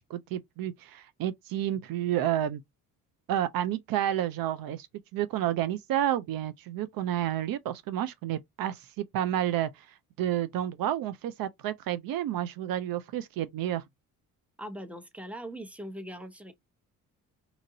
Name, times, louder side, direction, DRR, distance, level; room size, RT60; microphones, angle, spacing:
voice 1, 0.1-2.6 3.3-4.9 5.1-9.7 10.2-13.8, right 11 dB, 65° right, 0.5 m, -30 dB
voice 2, 14.6-16.5, right 1 dB, 5° right, 0.8 m, -41 dB
2.9 x 2.5 x 2.7 m
supercardioid pair, 65°, 38 cm